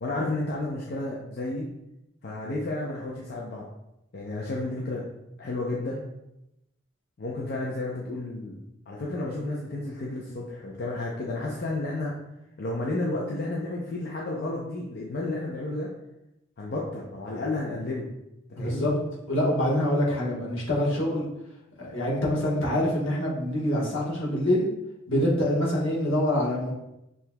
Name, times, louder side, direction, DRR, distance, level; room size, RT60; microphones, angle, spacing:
voice 1, 0.0-1.7 2.2-3.6 4.1-5.0 5.4-6.0 7.2-8.6 8.9-12.1 12.6-15.9 16.6-18.1 18.6-18.9, left 2 dB, 50° left, -3 dB, 0.5 m, -31 dB
voice 2, 18.5-18.9 19.3-21.3 21.8-24.7 25.1-26.7, left 1 dB, 80° left, -4 dB, 1.3 m, -25 dB
6.4 x 2.8 x 2.2 m, 0.87 s
head